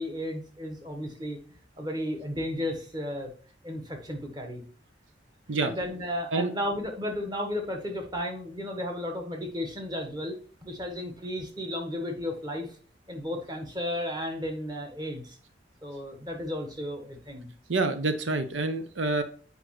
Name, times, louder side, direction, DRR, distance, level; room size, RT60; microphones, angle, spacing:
voice 1, 0.0-1.4 1.8-3.3 3.6-4.6 5.6-12.8 13.1-15.4 15.8-17.5, left 1 dB, 25° right, 3 dB, 1.5 m, -34 dB
voice 2, 17.7-19.2, right 3 dB, 90° right, 9 dB, 0.8 m, -27 dB
8.2 x 5.3 x 3.2 m, 0.41 s
head